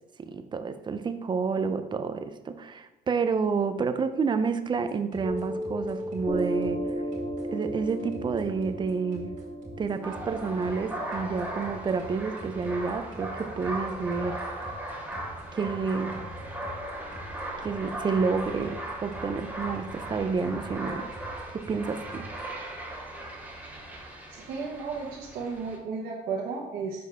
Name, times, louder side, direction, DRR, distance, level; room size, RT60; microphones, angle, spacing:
voice 1, 0.2-6.8 7.5-9.3 9.8-14.4 15.5-16.2 17.6-21.1 21.5-22.3, right 5 dB, 25° right, 9 dB, 0.5 m, -29 dB
sound 1, 4.7-22.5, right 1 dB, 45° right, 2.1 m, -46 dB
Piano, 5.2-12.3, equal, 20° left, 1.3 m, -35 dB
sound 2, 10.0-25.8, right 1 dB, 10° right, 1.5 m, -38 dB
voice 2, 24.3-27.1, right 4 dB, 65° right, -4 dB, 1.1 m, -34 dB
6.2 x 4.6 x 3.4 m, 1.1 s
cardioid pair, 110°, 17 cm